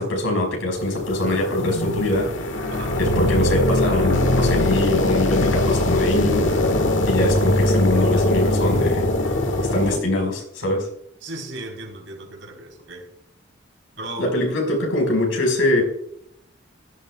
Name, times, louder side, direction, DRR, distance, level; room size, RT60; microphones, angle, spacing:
voice 1, 0.0-2.3 3.0-6.5 7.0-9.1 9.7-10.9 14.2-15.8, left 1 dB, 90° left, 2 dB, 4.9 m, -23 dB
sound 1, 0.8-10.0, left 1 dB, 70° left, 1.7 m, -21 dB
voice 2, 11.2-13.1 14.0-14.3, right 2 dB, 75° right, 2 dB, 4.0 m, -36 dB
16.0 x 13.0 x 2.4 m, 0.73 s
head